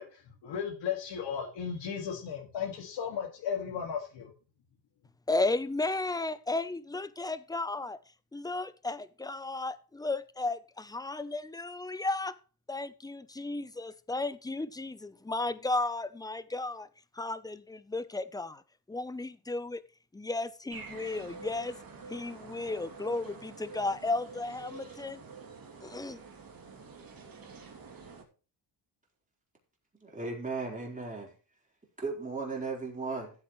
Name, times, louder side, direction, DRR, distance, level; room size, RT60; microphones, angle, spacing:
voice 1, 0.0-4.3, left 7 dB, 70° left, 2.2 m, -35 dB
voice 2, 5.3-8.0 8.3-12.4 12.7-16.9 17.1-18.6 18.9-19.8 20.1-21.8 22.1-25.2 25.8-26.2, left 2 dB, 10° left, 0.7 m, -34 dB
sound 1, 20.7-28.2, right 3 dB, 50° right, 2.8 m, -47 dB
voice 3, 30.0-31.3 32.0-33.3, right 3 dB, 15° right, 4.2 m, -36 dB
14.5 x 8.3 x 3.2 m
cardioid pair, 115°, 45 cm